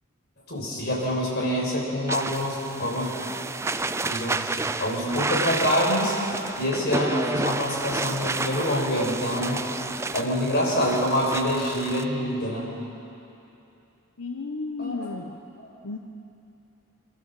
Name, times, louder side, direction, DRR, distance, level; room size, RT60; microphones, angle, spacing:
voice 1, 0.5-3.1 4.1-4.5 4.8-6.2 6.6-9.6 10.1-12.7 14.8-14.9 15.6-15.7, equal, 50° left, -4 dB, 5.9 m, -26 dB
sound 1, 2.1-12.0, right 3 dB, 15° right, 0.4 m, -31 dB
voice 2, 14.2-15.4 15.8-16.0, left 3 dB, 90° left, 3 dB, 1.0 m, -34 dB
25.0 x 14.5 x 7.6 m, 2.8 s
head